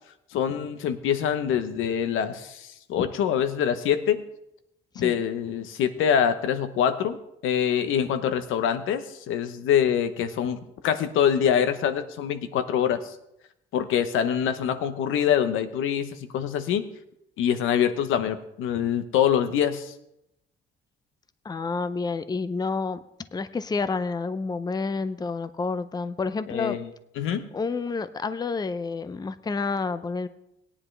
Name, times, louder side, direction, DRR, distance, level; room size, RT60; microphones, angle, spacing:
voice 1, 0.3-4.2 5.0-7.2 7.4-13.1 13.7-16.9 17.4-19.9 26.5-26.9 27.2-27.5, left 9 dB, 90° left, 10 dB, 0.9 m, -25 dB
voice 2, 21.4-23.0 23.3-26.8 27.5-30.3, left 4 dB, 20° left, 13 dB, 0.5 m, -29 dB
18.0 x 9.9 x 3.3 m, 0.83 s
cardioid pair, 90°, 20 cm